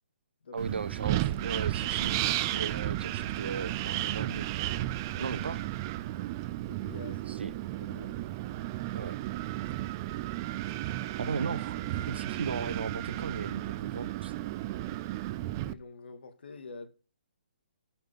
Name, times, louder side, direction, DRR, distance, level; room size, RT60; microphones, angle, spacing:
voice 1, 0.5-4.9 5.2-5.6 7.3-7.5 8.9-9.2 11.2-11.8 12.1-14.3, right 5 dB, 80° right, 0.9 m, -36 dB
Wind, 0.6-15.7, right 15 dB, 20° right, 0.3 m, -33 dB
voice 2, 6.7-7.4 7.7-8.3 15.6-16.9, left 3 dB, 70° left, 2.3 m, -47 dB
12.5 x 5.8 x 3.8 m
hypercardioid pair, 165°, 6 cm